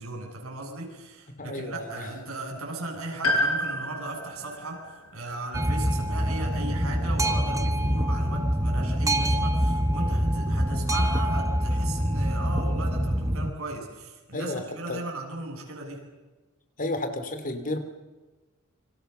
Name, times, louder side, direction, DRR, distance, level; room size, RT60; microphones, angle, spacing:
voice 1, 0.0-16.1, right 2 dB, 75° right, 1 dB, 8.0 m, -37 dB
voice 2, 1.4-2.1 14.3-14.6 14.9-15.0 16.8-17.8, left 2 dB, 40° left, 8 dB, 3.2 m, -32 dB
Piano, 3.2-7.4 8.6-8.7, left 1 dB, 80° left, 6.8 m, -31 dB
Boat Water vehicle, 5.5-13.5, equal, 15° right, 1.5 m, -25 dB
29.0 x 26.0 x 6.9 m, 1.2 s
head